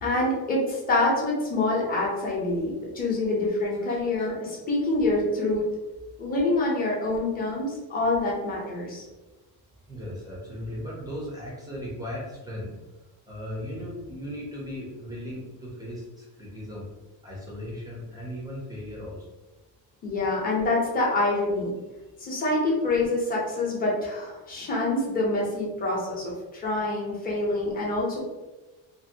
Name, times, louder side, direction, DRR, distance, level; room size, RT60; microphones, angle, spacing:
voice 1, 0.0-5.7 6.2-9.0 20.0-21.7 22.2-28.2, left 2 dB, 20° left, -4 dB, 0.7 m, -26 dB
voice 2, 3.9-4.3 9.9-12.7 13.3-16.9 17.2-19.3, equal, 10° right, -4 dB, 0.4 m, -37 dB
2.6 x 2.5 x 2.7 m, 1.2 s
cardioid pair, 175°, 40 cm